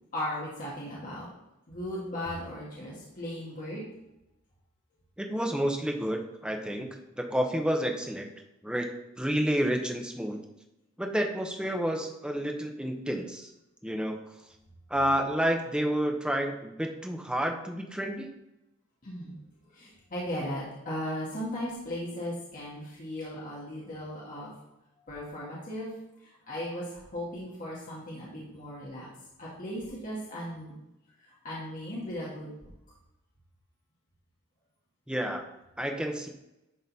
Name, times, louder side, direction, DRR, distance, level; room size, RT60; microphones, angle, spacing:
voice 1, 0.1-1.3 1.7-3.8 19.0-19.4 19.7-24.5 25.1-25.9 26.2-29.1 29.4-30.7 31.2-32.5, equal, 40° left, -6 dB, 1.9 m, -37 dB
voice 2, 5.2-6.9 7.2-8.3 8.6-8.9 9.2-10.4 11.0-13.5 13.8-14.2 14.9-18.3 35.1-35.4 35.8-36.3, equal, 5° right, 3 dB, 0.8 m, -29 dB
11.0 x 4.0 x 4.1 m, 0.91 s
head